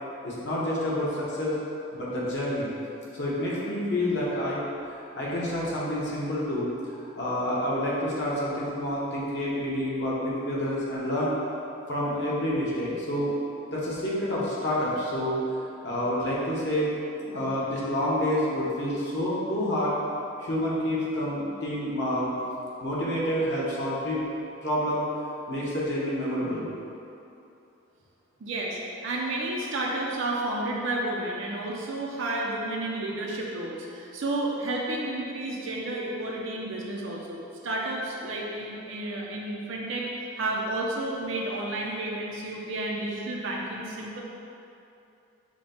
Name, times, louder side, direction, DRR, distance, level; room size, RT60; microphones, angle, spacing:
voice 1, 0.2-1.6 1.9-2.7 3.1-4.6 5.1-11.3 11.9-13.3 13.7-15.4 15.8-20.0 20.4-22.3 22.8-24.3 24.6-25.1 25.5-26.7, left 1 dB, 60° left, -7 dB, 1.0 m, -28 dB
voice 2, 28.4-44.2, right 2 dB, 75° right, -2 dB, 0.5 m, -31 dB
5.9 x 2.1 x 4.2 m, 2.7 s
head